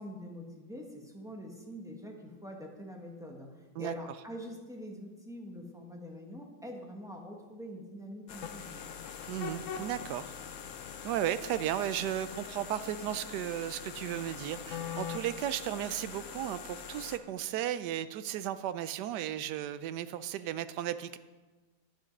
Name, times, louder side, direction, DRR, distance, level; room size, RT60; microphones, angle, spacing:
voice 1, 0.0-9.0, equal, ahead, 0 dB, 1.2 m, -45 dB
sound 1, 8.3-17.2, left 7 dB, 60° left, 0.9 m, -42 dB
voice 2, 9.3-10.3 11.0-21.2, right 11 dB, 80° right, 13 dB, 1.2 m, -35 dB
10.5 x 9.0 x 5.3 m, 1.3 s
omnidirectional pair, 1.8 m